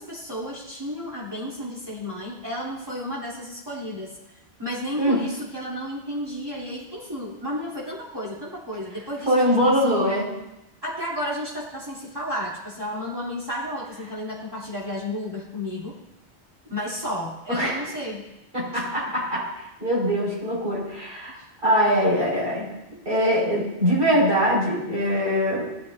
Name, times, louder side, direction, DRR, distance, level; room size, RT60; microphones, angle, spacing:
voice 1, 0.0-4.2 4.6-10.1 10.8-16.0 16.7-18.3 18.7-18.8 21.3-21.5, equal, 20° right, -6 dB, 3.4 m, -32 dB
voice 2, 9.3-10.3 17.5-17.8 18.5-19.5 19.8-22.7 23.1-25.7, equal, 50° right, -5 dB, 5.8 m, -22 dB
18.5 x 13.0 x 2.7 m, 0.91 s
omnidirectional pair, 1.1 m